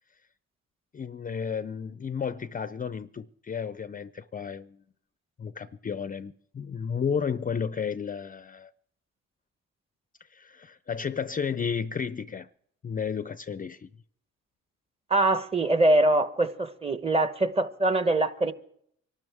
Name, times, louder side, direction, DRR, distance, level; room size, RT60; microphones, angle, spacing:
voice 1, 0.9-4.8 5.4-8.7 10.3-12.5 12.8-13.9, left 6 dB, 30° left, 0.5 m, -32 dB
voice 2, 15.1-18.5, right 2 dB, 20° right, 1.1 m, -23 dB
24.5 x 12.5 x 3.5 m
cardioid pair, 90°, 30 cm